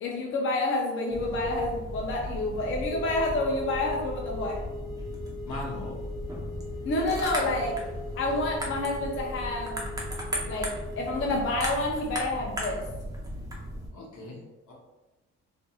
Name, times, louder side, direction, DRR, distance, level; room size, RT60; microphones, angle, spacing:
voice 1, 0.0-4.6 6.8-7.8 8.2-9.8 10.4-12.8, left 2 dB, 40° left, -2 dB, 0.5 m, -29 dB
sound 1, 0.8-11.4, left 2 dB, 70° right, 1.3 m, -39 dB
sound 2, 1.1-13.9, equal, 10° right, 0.6 m, -36 dB
voice 2, 5.4-6.0 13.9-14.4 14.7-14.8, left 2 dB, 75° left, -3 dB, 0.9 m, -38 dB
2.8 x 2.5 x 2.3 m, 1.1 s
cardioid pair, 90°, 30 cm